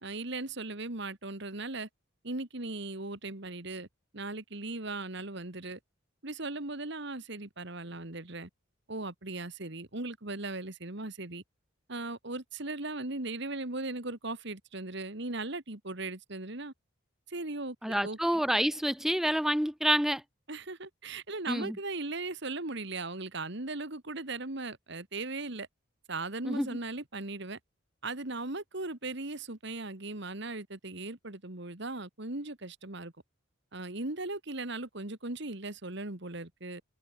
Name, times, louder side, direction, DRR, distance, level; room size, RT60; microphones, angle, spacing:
voice 1, 0.0-1.9 2.2-3.9 4.1-5.8 6.2-8.5 8.9-11.4 11.9-16.7 17.3-18.2 20.5-25.7 26.1-27.6 28.0-33.1 33.7-36.8, right 2 dB, 55° right, 2.0 m, -38 dB
voice 2, 17.8-20.2 21.5-21.8 26.5-26.7, equal, ahead, 0.5 m, -28 dB
head